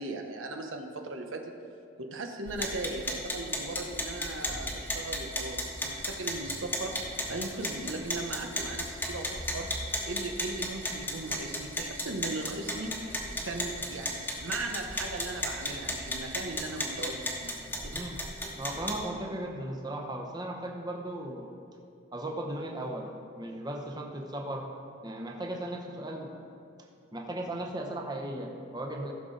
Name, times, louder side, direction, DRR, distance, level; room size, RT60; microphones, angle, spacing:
voice 1, 0.0-1.5 2.0-6.9 7.3-9.7 10.0-12.9 13.4-18.0, right 2 dB, 90° right, 4 dB, 0.9 m, -38 dB
sound 1, 2.5-19.0, left 1 dB, 10° left, 1.1 m, -35 dB
voice 2, 18.5-21.5 22.1-23.1 23.4-24.7 25.0-26.3 27.1-29.1, right 1 dB, 20° right, 1 dB, 0.9 m, -36 dB
15.0 x 6.5 x 3.9 m, 2.5 s
head